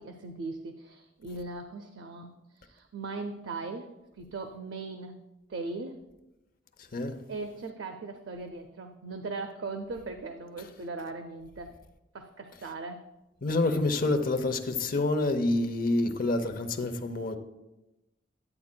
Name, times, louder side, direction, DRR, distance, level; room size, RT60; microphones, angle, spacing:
voice 1, 0.0-3.9 4.2-5.2 5.5-6.0 7.3-11.8 12.1-13.0, right 3 dB, 90° right, 0.5 m, -39 dB
voice 2, 13.4-17.4, left 2 dB, 50° left, 0.7 m, -27 dB
10.5 x 8.4 x 2.2 m
head